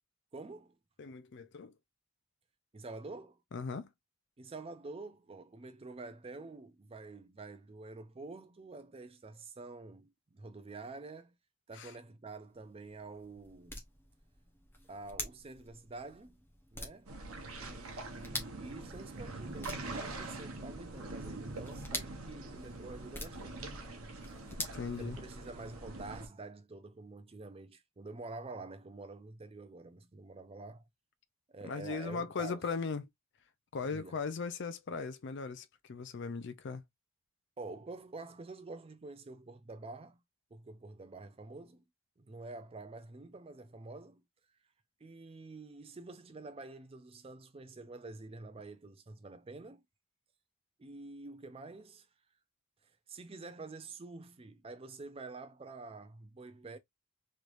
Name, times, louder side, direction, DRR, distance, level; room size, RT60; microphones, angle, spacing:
voice 1, 0.3-0.8 2.7-3.4 4.4-11.3 11.7-13.8 14.9-16.4 16.7-17.1 17.6-23.6 24.2-24.4 25.0-30.8 31.5-32.6 33.9-34.2 37.6-40.2 40.5-41.8 42.2-44.2 45.0-49.8 50.8-52.1 52.8-56.8, right 3 dB, 25° right, 0.4 m, -48 dB
voice 2, 1.0-1.7 3.5-3.9 11.7-11.9 24.6-25.2 31.6-33.1 33.7-36.8, left 4 dB, 55° left, 0.4 m, -38 dB
sound 1, 12.5-25.7, left 1 dB, 10° left, 0.7 m, -47 dB
sound 2, 17.1-26.3, right 2 dB, 75° right, 0.9 m, -44 dB
3.2 x 3.1 x 2.5 m
head